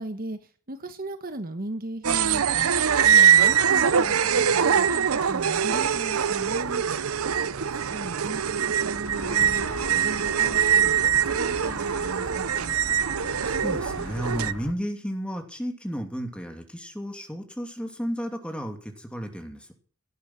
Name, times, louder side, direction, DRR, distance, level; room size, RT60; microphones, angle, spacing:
voice 1, 0.0-6.8 7.5-9.7 9.9-11.0 11.4-12.8, right 1 dB, 40° right, 9 dB, 1.2 m, -38 dB
sound 1, 2.0-14.5, right 8 dB, 75° right, 0.7 m, -23 dB
sound 2, 9.0-14.7, left 2 dB, 75° left, 1.6 m, -39 dB
voice 2, 13.4-19.7, equal, 5° left, 4 dB, 2.7 m, -33 dB
17.0 x 10.0 x 6.3 m, 0.43 s
head